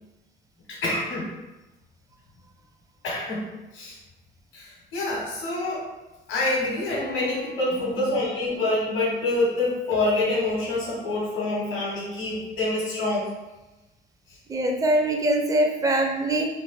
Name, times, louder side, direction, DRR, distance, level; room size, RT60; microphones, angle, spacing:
voice 1, 0.7-1.3 3.0-3.4 3.7-4.0 4.5-5.8 6.3-13.2, left 2 dB, 85° left, -5 dB, 1.3 m, -26 dB
sound 1, 6.9-8.9 9.9-12.3, left 6 dB, 65° left, 0.8 m, -43 dB
voice 2, 7.7-8.2 14.5-16.5, right 1 dB, 15° right, 1 dB, 0.5 m, -23 dB
3.2 x 2.4 x 4.2 m, 1.1 s
cardioid pair, 90°, 20 cm